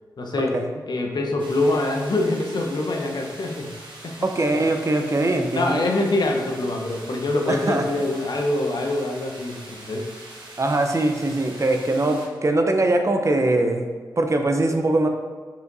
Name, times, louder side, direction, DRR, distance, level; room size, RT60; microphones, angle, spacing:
voice 1, 0.2-0.5 0.9-3.7 5.5-10.0, left 2 dB, 65° left, 1 dB, 1.0 m, -24 dB
sound 1, 1.4-12.3, right 2 dB, 80° right, 1.3 m, -43 dB
voice 2, 4.2-6.0 7.5-7.9 10.6-13.9 14.2-15.1, right 2 dB, 40° right, 4 dB, 0.7 m, -22 dB
5.1 x 5.0 x 4.0 m, 1.5 s
cardioid pair, 55°, 8 cm